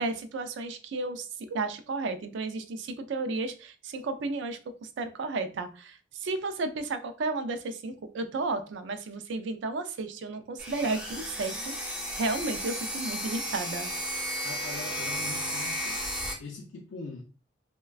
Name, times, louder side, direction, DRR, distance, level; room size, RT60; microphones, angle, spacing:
voice 1, 0.0-13.9, right 3 dB, 75° right, 0.4 m, -33 dB
sound 1, 10.6-16.3, equal, 5° right, 0.5 m, -34 dB
voice 2, 14.4-16.1 16.4-17.2, left 3 dB, 80° left, 0.4 m, -42 dB
3.1 x 2.1 x 2.3 m
head